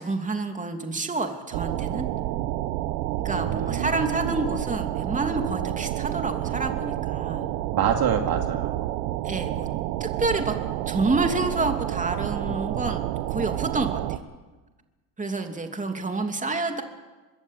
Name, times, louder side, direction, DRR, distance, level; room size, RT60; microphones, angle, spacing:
voice 1, 0.0-2.0 3.2-7.5 9.2-9.7 10.0-10.5 10.9-13.0 13.3-14.2 15.2-16.8, right 3 dB, 15° right, 5 dB, 3.0 m, -28 dB
sound 1, 1.5-14.2, right 15 dB, 80° right, 1.3 m, -29 dB
voice 2, 3.3-4.4 7.7-8.8, right 8 dB, 50° right, 4 dB, 2.7 m, -27 dB
24.5 x 22.0 x 8.4 m, 1.2 s
supercardioid pair, 95°, 46 cm